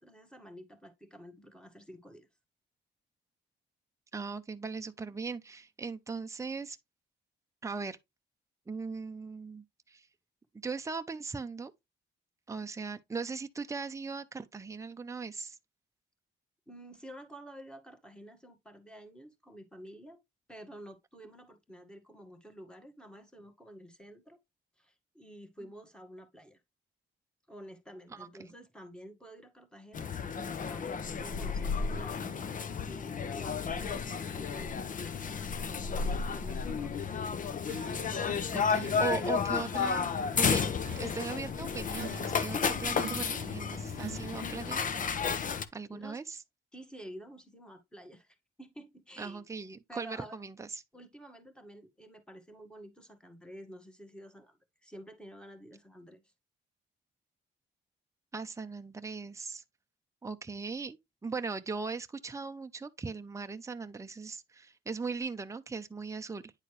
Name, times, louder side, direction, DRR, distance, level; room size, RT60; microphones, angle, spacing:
voice 1, 0.0-2.3 16.7-20.2 20.5-24.4 24.8-26.6 27.5-30.1 30.6-37.1 45.9-46.2 46.7-49.5 49.9-50.4 50.9-56.3, equal, 5° left, 1.9 m, -50 dB
voice 2, 4.1-6.8 7.6-8.0 8.7-10.1 10.5-11.7 12.5-15.6 28.1-28.3 38.5-40.1 40.3-44.9 45.7-46.4 49.2-50.8 58.3-59.6 60.2-66.5, right 4 dB, 15° right, 0.7 m, -39 dB
sound 1, 29.9-45.6, left 6 dB, 40° left, 0.8 m, -32 dB
sound 2, 37.6-44.8, right 10 dB, 70° right, 0.7 m, -47 dB
9.8 x 4.1 x 3.3 m
cardioid pair, 90°, 20 cm